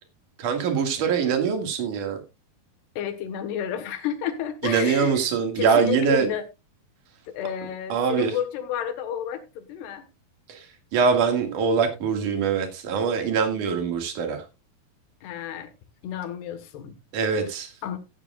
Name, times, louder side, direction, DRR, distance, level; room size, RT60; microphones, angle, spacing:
voice 1, 0.4-2.2 4.6-6.3 7.9-8.3 10.5-10.6 10.9-14.4 17.1-17.7, right 6 dB, 55° right, 3.3 m, -23 dB
voice 2, 3.0-5.2 5.6-6.4 7.3-10.1 15.2-15.7 16.0-17.0 17.3-17.5 17.8-18.0, left 9 dB, 85° left, 3.5 m, -31 dB
15.0 x 10.0 x 2.4 m
omnidirectional pair, 4.6 m